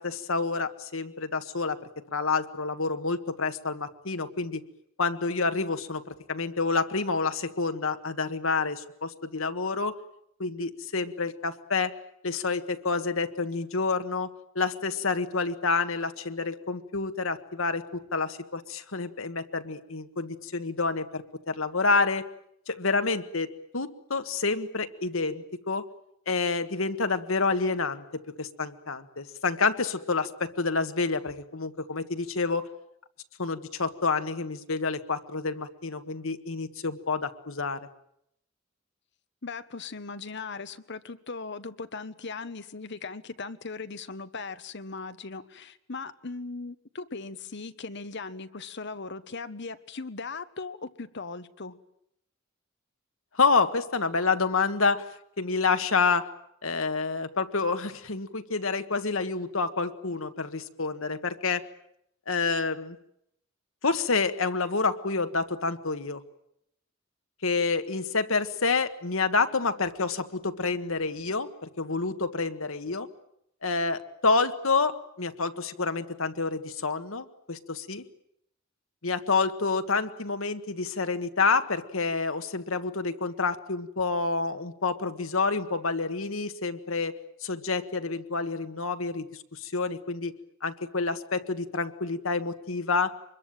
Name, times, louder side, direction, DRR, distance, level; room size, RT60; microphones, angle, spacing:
voice 1, 0.0-1.8 2.1-4.6 5.0-9.9 10.4-11.9 12.2-22.2 22.7-25.8 26.3-32.7 33.4-37.8 53.4-55.0 55.4-56.3 56.6-61.6 62.3-63.0 63.8-66.2 67.4-73.1 73.6-78.0 79.0-87.1 87.4-89.3 89.5-90.3 90.6-93.1, left 4 dB, 75° left, 9 dB, 1.6 m, -28 dB
voice 2, 39.4-51.8, left 4 dB, 60° left, 11 dB, 1.3 m, -38 dB
25.0 x 21.5 x 9.0 m, 0.76 s
head